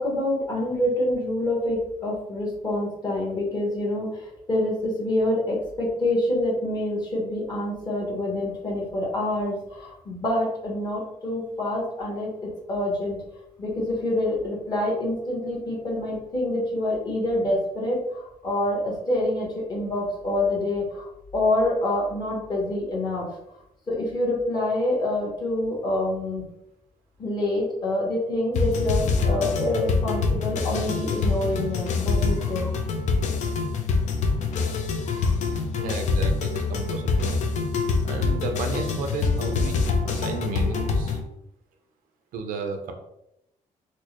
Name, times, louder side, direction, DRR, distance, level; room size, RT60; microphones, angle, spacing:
voice 1, 0.0-4.1 4.5-13.2 13.6-21.0 21.3-23.2 23.9-26.5 27.2-32.8 35.1-35.3, left 1 dB, 30° left, -3 dB, 1.1 m, -26 dB
sound 1, 28.5-41.2, left 4 dB, 60° left, 0.5 m, -25 dB
voice 2, 35.7-37.4 38.0-41.2 42.3-42.9, right 3 dB, 85° right, 5 dB, 0.6 m, -33 dB
4.3 x 2.1 x 2.9 m, 0.82 s
cardioid pair, 160°, 14 cm